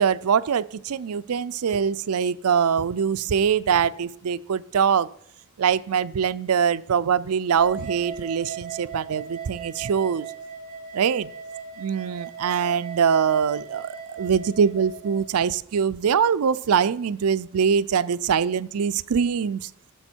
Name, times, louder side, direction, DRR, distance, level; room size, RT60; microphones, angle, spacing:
voice 1, 0.0-5.1 5.6-10.3 10.9-11.3 11.8-19.7, right 7 dB, 85° right, 16 dB, 0.4 m, -23 dB
sound 1, 7.5-15.2, right 7 dB, 25° right, 3.8 m, -38 dB
16.0 x 7.0 x 4.5 m, 0.70 s
head